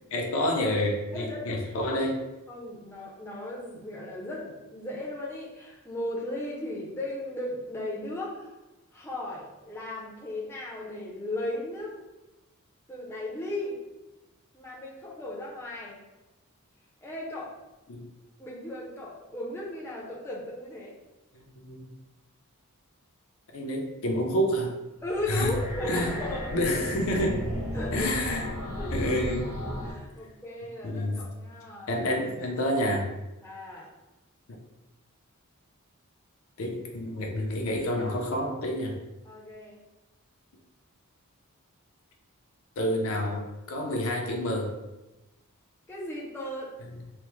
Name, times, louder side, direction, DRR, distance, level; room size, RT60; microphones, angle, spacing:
voice 1, 0.1-2.2 17.9-18.1 21.3-21.9 23.5-24.7 25.3-25.6 25.8-26.2 26.5-27.4 27.9-28.5 28.9-29.5 30.8-31.2 31.9-33.1 36.6-39.0 42.8-44.7 46.8-46.9, left 1 dB, 65° left, 1 dB, 0.5 m, -28 dB
voice 2, 1.1-1.6 2.5-8.5 8.9-12.0 12.9-13.8 14.5-16.0 17.0-17.5 18.4-20.9 25.0-26.5 27.7-28.2 28.8-29.0 29.8-32.0 33.4-33.9 39.3-39.8 45.9-46.7, left 1 dB, 10° left, -5 dB, 0.5 m, -36 dB
sound 1, 25.0-29.9, equal, 85° right, 1.1 m, -34 dB
3.2 x 2.0 x 3.1 m, 1.0 s
head